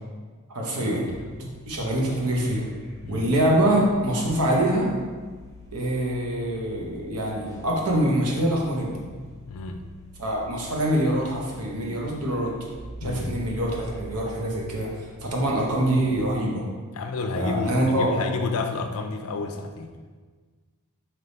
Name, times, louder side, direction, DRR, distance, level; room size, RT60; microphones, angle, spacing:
voice 1, 0.5-1.0 1.4-2.6 3.1-4.9 5.7-9.0 10.2-12.5 13.0-14.9 15.2-16.6 17.4-18.1, right 1 dB, 90° right, -2 dB, 0.8 m, -24 dB
sound 1, 1.1-16.1, left 1 dB, 15° left, 0.4 m, -45 dB
voice 2, 3.0-3.3 9.5-9.8 13.0-13.3 16.9-19.9, left 3 dB, 80° left, 6 dB, 0.4 m, -31 dB
3.4 x 3.0 x 4.0 m, 1.4 s
head